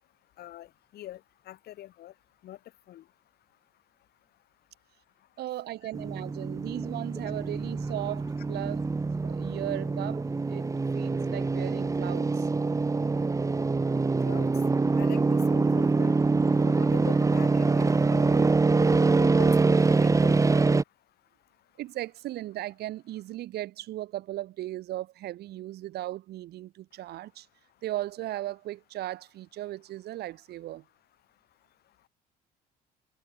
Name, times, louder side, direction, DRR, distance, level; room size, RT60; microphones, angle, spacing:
voice 1, 0.4-0.7 0.9-1.2 1.5-2.1 2.4-2.6 2.9-3.0 14.2-14.5 15.0-16.1 16.5-18.5 19.1-20.8, left 13 dB, 70° left, 6.7 m, -44 dB
voice 2, 5.4-8.9 9.2-12.5 18.9-19.0 21.8-27.5 27.8-30.8, right 15 dB, 75° right, 4.5 m, -37 dB
sound 1, 5.9-20.8, right 3 dB, 20° right, 1.7 m, -25 dB
cardioid pair, 110°, 17 cm